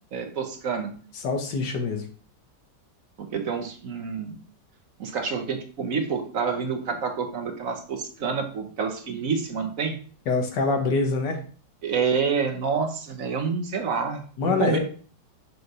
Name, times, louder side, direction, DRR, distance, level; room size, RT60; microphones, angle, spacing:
voice 1, 0.1-0.9 3.2-4.4 5.0-10.0 11.8-14.8, right 5 dB, 55° right, 5 dB, 1.2 m, -28 dB
voice 2, 1.2-2.0 10.3-11.4 14.4-14.8, left 4 dB, 70° left, 3 dB, 1.8 m, -24 dB
6.5 x 3.2 x 5.4 m, 0.42 s
omnidirectional pair, 1.9 m